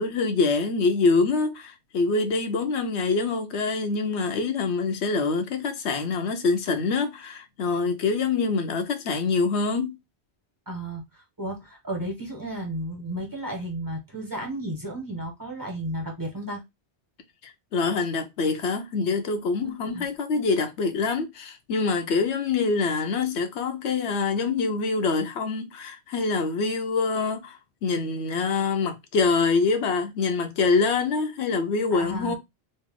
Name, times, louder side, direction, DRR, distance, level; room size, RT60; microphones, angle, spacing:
voice 1, 0.0-10.0 17.4-32.3, left 4 dB, 80° left, 1.0 m, -25 dB
voice 2, 10.7-16.6 19.6-20.0 31.9-32.4, right 1 dB, 20° right, 1.4 m, -33 dB
3.2 x 2.7 x 3.6 m
omnidirectional pair, 1.1 m